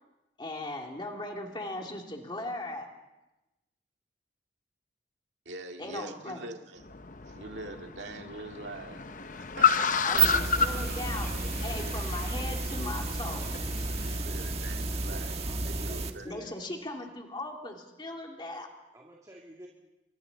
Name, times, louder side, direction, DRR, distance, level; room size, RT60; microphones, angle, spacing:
voice 1, 0.4-2.9 5.8-6.4 10.0-11.3 11.6-13.4 16.2-18.7, left 2 dB, 25° left, 1 dB, 2.6 m, -38 dB
voice 2, 5.5-6.8 7.3-9.1 9.3-10.4 11.7-11.9 14.0-16.3, right 2 dB, 75° right, 3 dB, 2.2 m, -44 dB
Car, 6.8-14.2, left 6 dB, 45° left, 0.8 m, -31 dB
sound 1, 9.9-16.1, right 4 dB, 35° right, 1.5 m, -31 dB
voice 3, 15.0-16.5 18.9-19.7, equal, 20° right, -2 dB, 2.4 m, -49 dB
29.5 x 25.5 x 4.0 m, 1.0 s
head